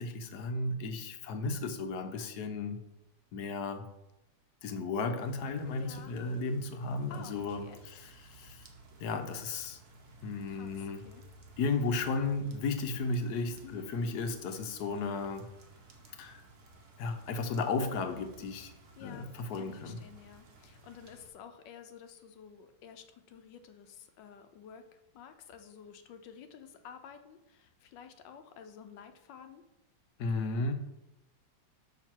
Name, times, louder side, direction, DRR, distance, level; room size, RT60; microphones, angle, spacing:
voice 1, 0.0-2.8 3.3-3.9 4.6-8.7 9.0-9.8 10.2-11.1 11.6-15.5 16.2-16.4 17.0-18.7 19.0-20.0 30.2-30.7, left 3 dB, 70° left, 7 dB, 1.3 m, -34 dB
sound 1, 5.2-21.3, right 3 dB, 60° right, 1.5 m, -56 dB
voice 2, 5.8-6.2 7.1-7.9 10.5-11.2 13.6-13.9 19.0-29.6, left 7 dB, 90° left, 8 dB, 1.4 m, -51 dB
6.3 x 6.0 x 4.5 m, 0.92 s
omnidirectional pair, 1.9 m